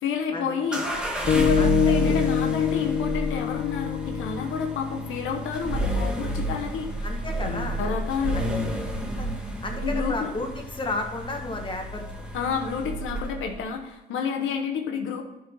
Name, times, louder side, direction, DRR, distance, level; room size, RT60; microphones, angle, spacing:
voice 1, 0.0-0.8 1.3-7.0 7.4-8.4 9.8-10.3 12.3-15.2, left 6 dB, 85° left, 3 dB, 1.1 m, -29 dB
sound 1, 0.7-13.6, right 1 dB, 5° right, 1.6 m, -30 dB
sound 2, 1.3-5.5, left 9 dB, 50° left, 0.6 m, -26 dB
voice 2, 1.6-2.2 7.0-7.9 8.3-8.5 9.2-9.3 9.6-12.3, left 2 dB, 25° left, 2 dB, 1.6 m, -33 dB
10.5 x 4.5 x 4.6 m, 1.0 s
cardioid pair, 90°, 20 cm